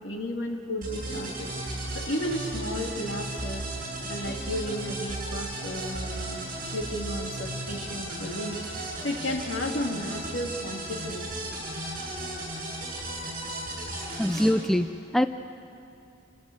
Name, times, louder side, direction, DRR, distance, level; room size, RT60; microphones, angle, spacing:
voice 1, 0.0-1.5 1.9-3.7 4.1-6.4 6.7-11.5, equal, 70° left, 2 dB, 2.5 m, -33 dB
sound 1, 0.8-14.5, right 1 dB, 50° right, 6.9 m, -35 dB
voice 2, 14.2-15.3, equal, ahead, 9 dB, 0.5 m, -24 dB
28.0 x 17.0 x 7.9 m, 2.6 s
head